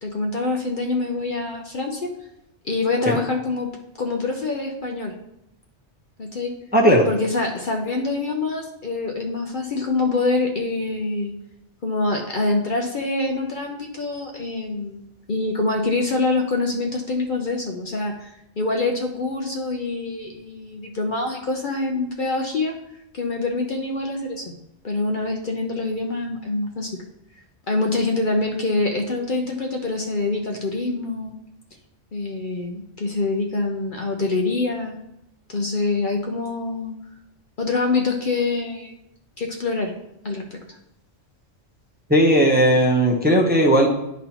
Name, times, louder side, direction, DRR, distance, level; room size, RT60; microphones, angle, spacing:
voice 1, 0.0-2.1 2.6-3.7 4.0-5.1 6.2-6.5 7.1-11.3 11.8-15.0 15.3-18.3 18.6-22.7 23.1-24.5 24.8-26.9 27.7-31.3 32.1-35.0 35.5-36.9 37.6-39.0 39.4-39.9 40.2-40.6, left 3 dB, 50° left, 1 dB, 0.8 m, -25 dB
voice 2, 6.7-7.1 42.1-43.9, equal, 10° right, -1 dB, 0.7 m, -16 dB
11.5 x 4.1 x 2.9 m, 0.84 s
omnidirectional pair, 1.2 m